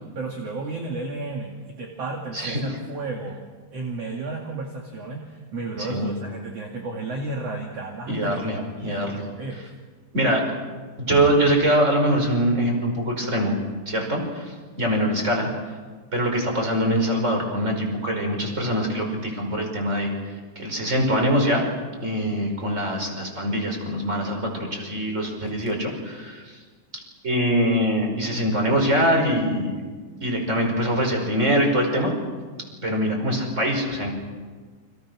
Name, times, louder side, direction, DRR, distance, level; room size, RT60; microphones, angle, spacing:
voice 1, 0.1-3.4 3.7-9.7, right 3 dB, 45° right, 0 dB, 2.4 m, -33 dB
voice 2, 5.8-6.1 8.1-8.6 8.8-9.2 10.1-10.5 11.0-13.6 13.9-15.5 16.1-20.1 20.5-21.7 22.0-26.4 27.2-29.8 30.2-32.1 32.8-34.1, equal, 15° right, 3 dB, 4.9 m, -23 dB
30.0 x 26.0 x 6.2 m, 1.5 s
omnidirectional pair, 5.5 m